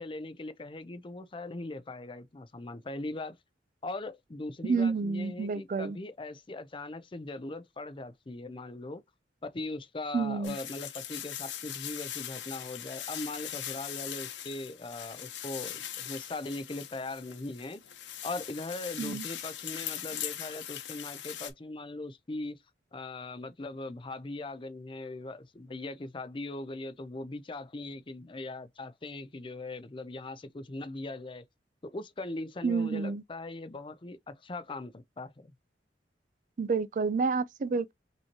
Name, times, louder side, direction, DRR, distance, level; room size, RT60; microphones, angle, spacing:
voice 1, 0.0-3.4 3.8-9.0 9.4-17.8 18.2-22.6 22.9-31.4 31.9-35.5, left 2 dB, 30° left, 0.5 m, -40 dB
voice 2, 4.6-6.0 10.1-10.6 19.0-19.2 32.6-33.2 36.6-37.9, right 4 dB, 45° right, 0.4 m, -29 dB
sound 1, 10.4-21.5, left 10 dB, 90° left, 0.9 m, -40 dB
5.4 x 2.9 x 2.8 m
head